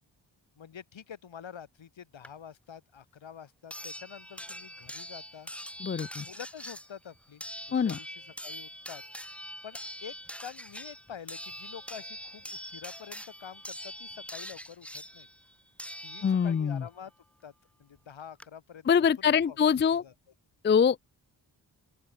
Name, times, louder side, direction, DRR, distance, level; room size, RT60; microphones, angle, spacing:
voice 1, 0.6-5.5 6.2-9.0 9.6-15.3 16.0-17.1 17.4-17.5 17.8-20.1, left 8 dB, 75° left, 2.9 m, -47 dB
sound 1, 2.2-2.3 3.7-16.7 18.0-18.1 18.4-18.5, equal, 5° left, 2.5 m, -43 dB
voice 2, 5.8-6.3 7.7-8.0 16.2-16.8 18.9-20.0 20.6-21.0, left 7 dB, 25° left, 0.4 m, -24 dB
open air
supercardioid pair, 40°, 46 cm